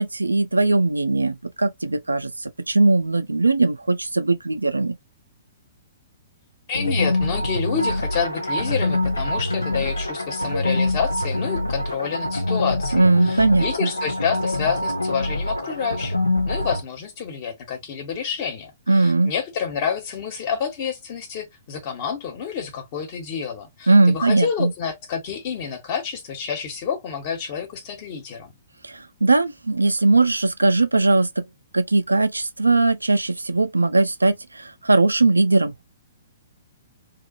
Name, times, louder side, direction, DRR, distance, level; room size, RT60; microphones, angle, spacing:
voice 1, 0.0-5.0 12.9-13.9 18.9-19.3 23.9-24.7 29.2-31.4 31.7-35.7, right 3 dB, 85° right, 0.4 m, -19 dB
sound 1, 6.7-16.8, left 1 dB, 85° left, 0.5 m, -25 dB
voice 2, 6.7-28.5, left 7 dB, 40° left, 1.2 m, -29 dB
2.7 x 2.3 x 2.5 m
figure-of-eight pair, 115°, 0 cm